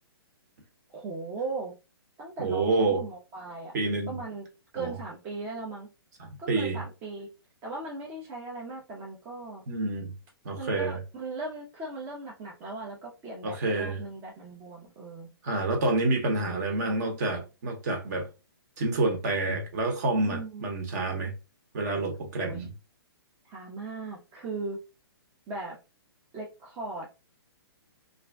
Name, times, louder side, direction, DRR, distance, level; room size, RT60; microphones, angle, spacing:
voice 1, 0.9-1.7 2.2-3.7 4.1-4.5 4.7-5.9 6.4-7.3 7.6-9.6 10.6-15.3 16.3-17.1 20.2-20.7 22.4-22.7 23.5-24.8 25.5-25.8 26.3-27.1, right 3 dB, 15° right, 0.4 m, -38 dB
voice 2, 2.4-3.0 3.7-4.2 4.8-4.9 6.2-6.8 9.7-10.1 10.4-11.0 13.4-14.0 15.4-18.3 18.8-21.3 21.7-22.7, right 2 dB, 45° right, 0.9 m, -28 dB
2.4 x 2.0 x 3.4 m
hypercardioid pair, 160°, 13 cm